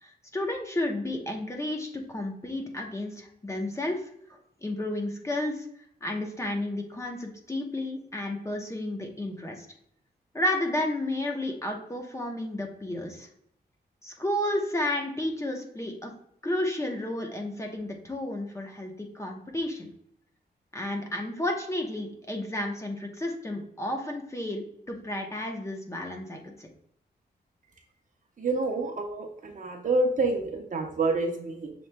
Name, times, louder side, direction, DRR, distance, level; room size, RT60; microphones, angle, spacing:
voice 1, 0.0-5.7 6.0-9.7 10.3-13.3 14.0-16.1 16.4-19.9 20.7-26.7, left 1 dB, 15° left, 1 dB, 0.8 m, -32 dB
voice 2, 28.4-31.7, right 2 dB, 50° right, 3 dB, 0.8 m, -28 dB
6.9 x 3.1 x 2.2 m, 0.70 s
wide cardioid pair, 105°, 17 cm